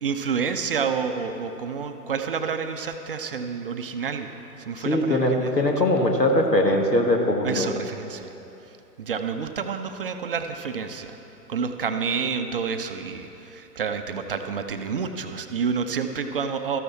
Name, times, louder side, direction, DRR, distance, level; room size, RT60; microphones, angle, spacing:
voice 1, 0.0-4.3 4.6-5.8 7.4-8.3 9.0-11.2 11.5-16.8, right 6 dB, 35° right, 6 dB, 0.5 m, -29 dB
voice 2, 4.8-7.7, left 1 dB, 90° left, 2 dB, 1.5 m, -21 dB
13.5 x 11.5 x 4.2 m, 3.0 s
figure-of-eight pair, 120°, 48 cm